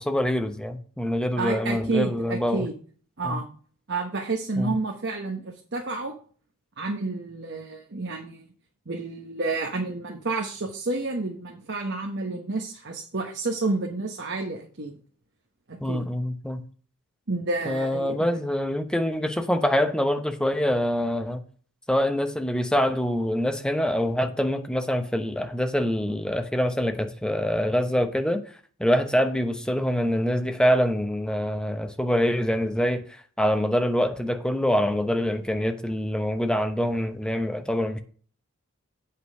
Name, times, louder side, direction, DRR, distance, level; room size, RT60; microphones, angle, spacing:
voice 1, 0.0-2.7 3.2-3.4 4.6-4.8 15.8-16.6 17.7-21.4 21.9-28.4 28.8-33.0 33.4-38.0, equal, 5° left, 0.9 m, -25 dB
voice 2, 1.4-2.8 3.2-3.5 3.9-6.1 6.8-8.5 8.9-15.0 15.7-16.0 17.3-18.4, right 3 dB, 55° right, 1.2 m, -30 dB
8.6 x 5.6 x 5.5 m
head